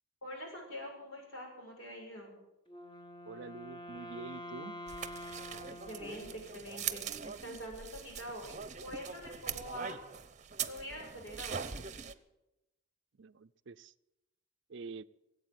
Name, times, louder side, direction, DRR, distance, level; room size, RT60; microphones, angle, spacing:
voice 1, 0.2-2.4 5.9-8.5 8.8-10.0 10.7-11.9, equal, 75° left, 0 dB, 6.5 m, -45 dB
Wind instrument woodwind instrument, 2.7-6.9, left 1 dB, 25° left, 1.7 m, -47 dB
voice 2, 3.3-4.8 13.2-13.9 14.7-15.0, right 4 dB, 65° right, 15 dB, 0.5 m, -46 dB
sound 1, 4.9-12.1, right 7 dB, 35° right, 0.8 m, -42 dB
18.5 x 8.3 x 9.2 m, 0.94 s
head